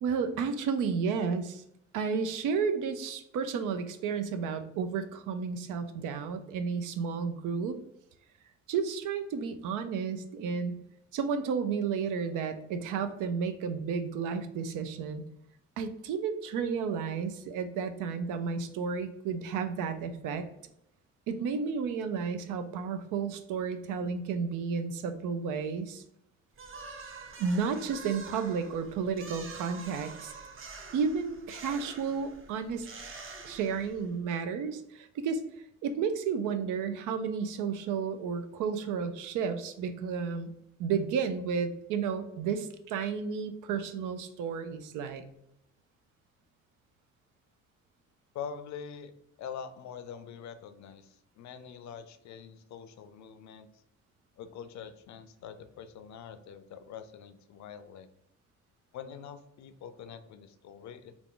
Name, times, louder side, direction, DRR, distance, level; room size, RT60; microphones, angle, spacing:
voice 1, 0.0-1.6 1.9-7.8 8.7-10.8 11.1-15.2 15.8-20.4 21.3-26.0 27.4-30.3 30.9-32.9 33.4-35.4 35.8-40.5 40.8-45.2, right 6 dB, 90° right, 10 dB, 0.5 m, -32 dB
sound 1, 26.6-34.2, right 4 dB, 45° right, 0.6 m, -46 dB
voice 2, 48.3-49.1 49.4-53.8 54.4-58.1 58.9-61.2, left 7 dB, 65° left, 11 dB, 0.5 m, -44 dB
3.4 x 2.4 x 3.7 m, 0.79 s
cardioid pair, 90°, 30 cm